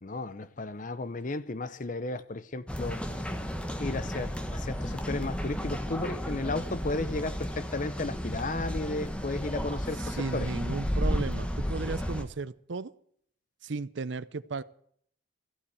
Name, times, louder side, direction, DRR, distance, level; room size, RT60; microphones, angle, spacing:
voice 1, 0.0-3.0 3.8-10.5, left 2 dB, 45° left, 0.7 m, -34 dB
sound 1, 2.7-12.2, equal, 5° left, 1.2 m, -33 dB
voice 2, 10.0-12.9 13.6-14.6, right 4 dB, 70° right, 0.6 m, -35 dB
15.0 x 8.6 x 8.0 m
head